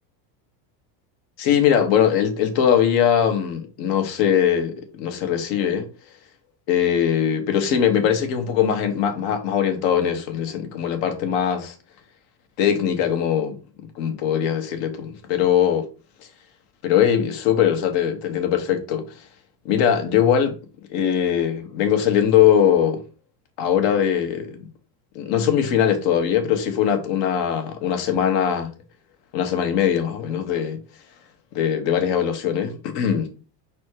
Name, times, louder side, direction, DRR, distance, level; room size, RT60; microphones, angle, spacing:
voice 1, 1.4-5.9 6.7-11.7 12.6-13.6 13.9-15.9 16.8-19.1 19.6-20.6 20.9-23.0 23.6-24.7 25.1-28.7 29.3-30.8 31.5-33.3, left 9 dB, 55° left, 1.5 m, -21 dB
4.9 x 4.2 x 4.6 m
cardioid pair, 160°, 49 cm